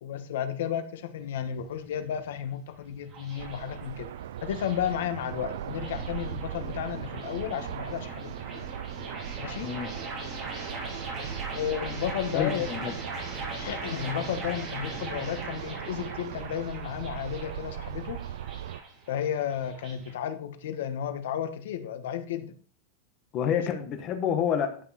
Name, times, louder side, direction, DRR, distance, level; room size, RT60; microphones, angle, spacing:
voice 1, 0.0-4.1 4.4-8.6 9.4-9.7 11.5-12.7 13.5-18.2 19.1-22.5 23.5-23.7, left 9 dB, 70° left, 9 dB, 1.4 m, -33 dB
sound 1, 1.2-20.1, right 3 dB, 25° right, 3.1 m, -40 dB
sound 2, 3.4-18.8, right 11 dB, 75° right, 0.4 m, -39 dB
voice 2, 9.6-10.0 12.3-12.9 23.3-24.8, left 8 dB, 30° left, 7 dB, 1.2 m, -28 dB
12.0 x 5.5 x 4.3 m, 0.42 s
supercardioid pair, 170°, 0 cm